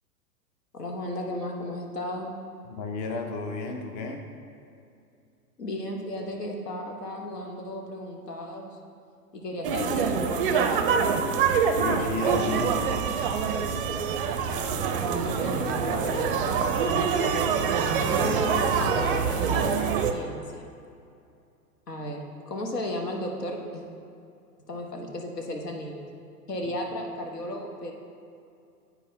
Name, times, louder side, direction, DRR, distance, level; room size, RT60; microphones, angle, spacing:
voice 1, 0.7-2.4 5.6-8.7 9.3-11.0 13.9-14.1 14.5-16.7 18.1-20.6 21.9-22.2 22.5-23.8 24.7-26.1 26.5-27.9, left 1 dB, 80° left, 1 dB, 1.1 m, -34 dB
voice 2, 2.7-4.2 11.7-12.8, left 3 dB, 30° left, 3 dB, 0.5 m, -32 dB
sound 1, 9.6-20.1, right 6 dB, 40° right, 0.4 m, -25 dB
10.0 x 4.5 x 2.7 m, 2.5 s
figure-of-eight pair, 100°, 47 cm